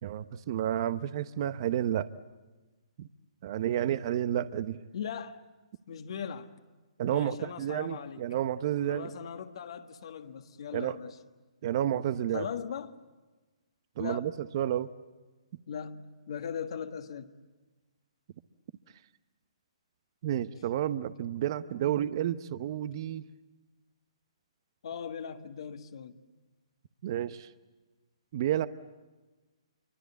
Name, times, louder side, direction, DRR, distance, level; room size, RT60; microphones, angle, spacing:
voice 1, 0.0-2.1 3.0-3.1 3.4-4.8 7.0-9.1 10.7-11.0 11.6-12.5 14.0-14.9 20.2-23.2 27.0-27.5 28.3-28.7, right 11 dB, 45° right, 0.9 m, -30 dB
voice 2, 4.9-5.4 5.9-6.5 7.1-8.2 8.9-11.2 12.3-13.0 14.0-14.3 15.7-17.3 24.8-26.1, left 7 dB, 60° left, 1.6 m, -39 dB
27.0 x 24.0 x 8.4 m
hypercardioid pair, 140°, 3 cm